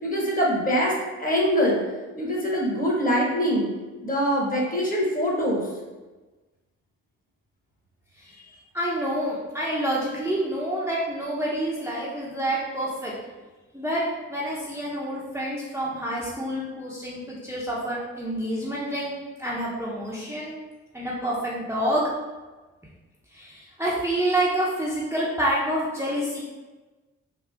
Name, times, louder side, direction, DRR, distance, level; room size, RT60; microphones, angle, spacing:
voice 1, 0.0-0.9 1.2-1.8 2.2-3.7 4.0-5.6, equal, 25° left, -2 dB, 1.3 m, -23 dB
voice 2, 8.7-13.1 13.7-14.0 14.3-20.6 20.9-22.0 23.3-26.4, right 1 dB, 5° right, -7 dB, 0.8 m, -28 dB
3.7 x 2.4 x 3.4 m, 1.2 s
supercardioid pair, 55°, 34 cm